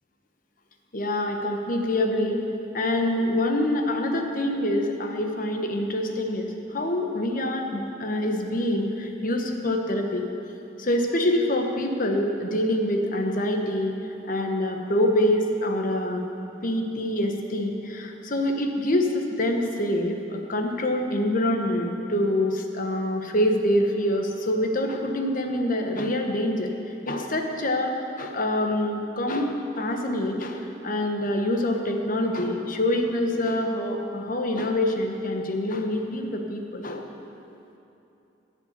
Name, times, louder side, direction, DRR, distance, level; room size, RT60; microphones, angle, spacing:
voice 1, 0.9-2.5 2.7-10.2 10.8-13.9 14.2-16.2 16.6-26.7 27.1-37.0, left 1 dB, 45° left, 3 dB, 1.1 m, -25 dB
14.5 x 5.7 x 8.2 m, 2.8 s
head